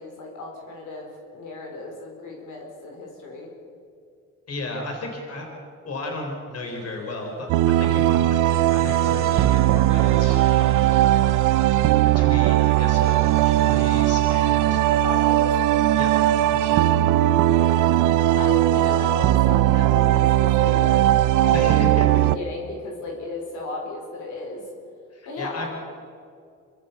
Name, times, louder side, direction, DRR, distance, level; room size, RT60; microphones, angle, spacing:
voice 1, 0.0-3.5 12.4-12.6 14.5-15.5 17.4-21.1 21.4-24.6 25.3-25.7, left 2 dB, 85° left, 0 dB, 4.7 m, -35 dB
voice 2, 4.5-5.5 5.8-10.9 12.1-14.8 16.0-16.9 18.4-18.5 21.5-22.1 25.1-25.7, left 2 dB, 55° left, 2 dB, 4.5 m, -34 dB
sound 1, 6.6-14.1, right 6 dB, 45° right, 2.6 m, -43 dB
sound 2, 7.5-22.4, right 14 dB, 85° right, 0.7 m, -19 dB
27.5 x 13.5 x 7.1 m, 2.3 s
cardioid pair, 90°, 30 cm